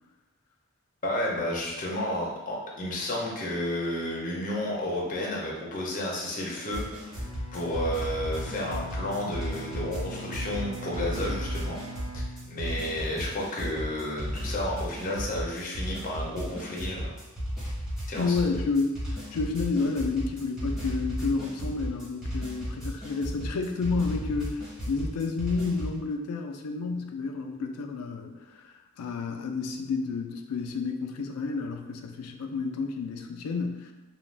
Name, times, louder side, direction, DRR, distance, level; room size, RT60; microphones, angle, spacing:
voice 1, 1.0-6.8 7.1-7.2 7.5-11.8 12.1-17.1 18.1-18.4, left 1 dB, 35° left, -3 dB, 0.5 m, -31 dB
sound 1, 6.7-26.0, equal, ahead, 1.0 m, -34 dB
Bowed string instrument, 7.1-13.1, equal, 90° right, 0.9 m, -42 dB
voice 2, 18.2-19.0 19.3-33.9, left 4 dB, 85° left, 4 dB, 0.4 m, -30 dB
2.4 x 2.2 x 3.2 m, 1.1 s
head